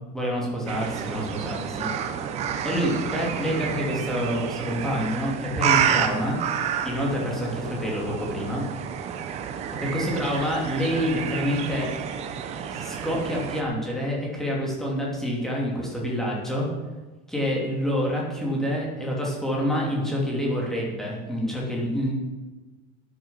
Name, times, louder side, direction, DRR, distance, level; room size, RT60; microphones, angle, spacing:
voice 1, 0.1-1.9 2.6-6.4 6.8-8.6 9.8-11.9 12.7-16.7 17.3-22.1, equal, ahead, -3 dB, 2.8 m, -27 dB
sound 1, 0.7-13.6, right 8 dB, 30° right, 1.0 m, -30 dB
12.0 x 9.8 x 5.7 m, 1.2 s
cardioid pair, 180°, 21 cm